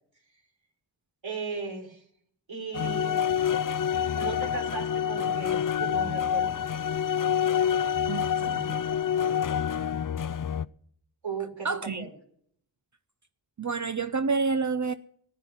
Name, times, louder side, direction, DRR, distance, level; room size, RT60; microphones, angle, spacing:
voice 1, 1.2-2.0 2.5-3.2 4.1-6.6 11.2-12.1, right 4 dB, 75° right, 4.2 m, -36 dB
sound 1, 2.7-10.7, left 8 dB, 45° left, 0.5 m, -27 dB
voice 2, 8.0-8.8 11.6-12.0 13.6-14.9, right 4 dB, 40° right, 0.6 m, -29 dB
15.0 x 9.3 x 5.7 m
wide cardioid pair, 60°, 46 cm